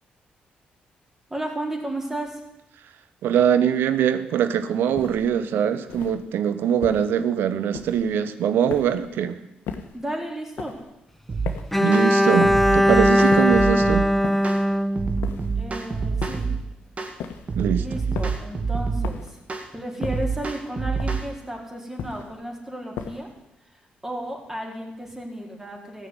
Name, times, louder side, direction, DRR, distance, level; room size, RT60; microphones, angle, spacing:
voice 1, 1.3-2.4 9.9-10.8 15.6-16.6 17.7-19.4 19.7-23.3 23.7-26.1, right 1 dB, 15° right, 0 dB, 4.4 m, -33 dB
voice 2, 3.2-9.4 11.8-14.1 17.5-17.8, right 9 dB, 80° right, 12 dB, 0.9 m, -22 dB
sound 1, 5.0-5.4 5.9-6.3 6.8-7.2 7.7-8.1 8.7-9.1 9.7-10.0 10.6-10.9 11.5-11.8 12.4-12.8 13.3-13.7 14.2-14.6 15.2-15.6 16.2-16.6 17.2-17.6 18.2-18.5 19.0-19.4 20.0-20.4 21.0-21.4 22.0-22.4 23.0-23.4, left 6 dB, 80° left, 1.3 m, -36 dB
sound 2, 11.3-11.5 11.9-12.1 12.4-14.0 14.4-14.6 15.0-16.6 17.0-17.2 17.5-19.1 19.5-19.7 20.0-21.3, right 5 dB, 40° right, 2.3 m, -27 dB
Bowed string instrument, 11.7-15.8, equal, 5° left, 0.8 m, -19 dB
14.5 x 6.7 x 9.6 m, 0.90 s
supercardioid pair, 60°, 4 cm